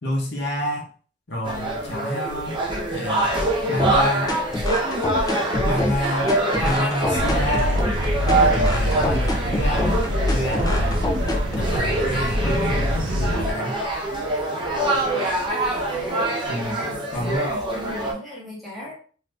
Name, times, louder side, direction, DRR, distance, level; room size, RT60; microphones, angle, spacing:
voice 1, 0.0-0.9 1.3-2.6 2.9-3.3 3.7-4.3 5.6-6.4 6.6-7.9 8.2-11.1 11.6-13.8 16.5-16.8 17.1-17.6, equal, 65° left, -1 dB, 0.9 m, -28 dB
sound 1, 1.4-18.1, right 1 dB, 25° right, 0.7 m, -25 dB
sound 2, 3.8-11.8, left 1 dB, 20° left, 0.4 m, -26 dB
sound 3, 7.1-13.5, equal, 80° right, 0.6 m, -25 dB
voice 2, 15.1-16.3 16.6-18.9, equal, ahead, -6 dB, 1.0 m, -38 dB
2.7 x 2.4 x 3.3 m, 0.41 s
head